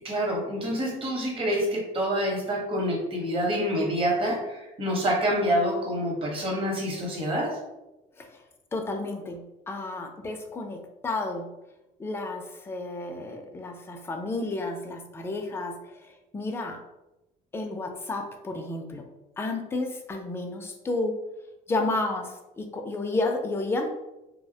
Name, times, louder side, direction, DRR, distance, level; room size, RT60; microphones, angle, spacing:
voice 1, 0.0-7.6, equal, 30° right, -2 dB, 0.8 m, -27 dB
voice 2, 8.7-11.5 12.0-16.8 17.5-19.0 19.4-21.2 21.7-23.9, left 2 dB, 15° left, 3 dB, 0.3 m, -31 dB
2.3 x 2.0 x 2.6 m, 0.97 s
cardioid pair, 110°, 17 cm